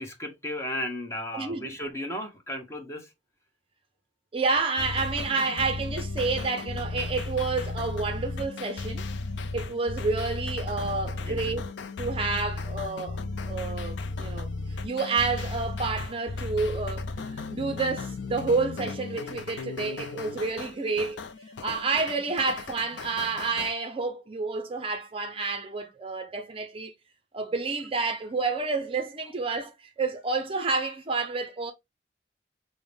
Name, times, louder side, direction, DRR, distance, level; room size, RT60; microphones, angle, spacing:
voice 1, 0.0-3.1 11.3-11.5, left 1 dB, 15° left, 0.9 m, -35 dB
voice 2, 1.3-1.7 4.3-9.0 9.5-11.6 12.0-14.5 14.8-17.1 17.3-21.2 21.6-26.9 27.3-31.7, right 4 dB, 30° right, 0.5 m, -29 dB
sound 1, 4.8-23.7, left 3 dB, 85° left, 0.4 m, -35 dB
5.4 x 2.1 x 3.3 m
head